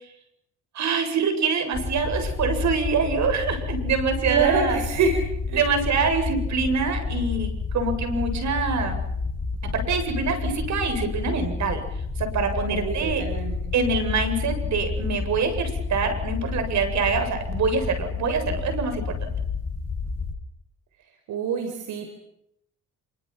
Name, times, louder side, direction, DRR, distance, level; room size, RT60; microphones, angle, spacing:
voice 1, 0.7-4.8 5.5-9.0 9.6-11.8 12.2-13.2 13.7-19.2, right 4 dB, 65° right, 6 dB, 8.0 m, -25 dB
sound 1, 1.7-20.3, left 4 dB, 50° left, 6.5 m, -30 dB
voice 2, 4.3-5.1 5.5-5.7 12.7-13.6 21.3-22.1, right 5 dB, 80° right, 5 dB, 4.8 m, -25 dB
29.0 x 25.5 x 6.1 m, 0.76 s
cardioid pair, 90°, 30 cm